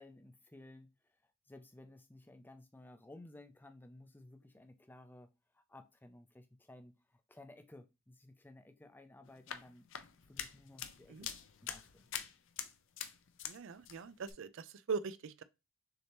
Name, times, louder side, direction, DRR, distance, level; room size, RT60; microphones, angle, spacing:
voice 1, 0.0-5.3 5.5-9.9 10.3-11.3 11.6-12.1, left 2 dB, 10° left, 0.4 m, -57 dB
sound 1, 9.3-13.6 13.8-14.3, left 9 dB, 60° left, 0.5 m, -45 dB
voice 2, 13.5-15.4, right 5 dB, 65° right, 0.4 m, -41 dB
6.5 x 2.7 x 3.0 m
head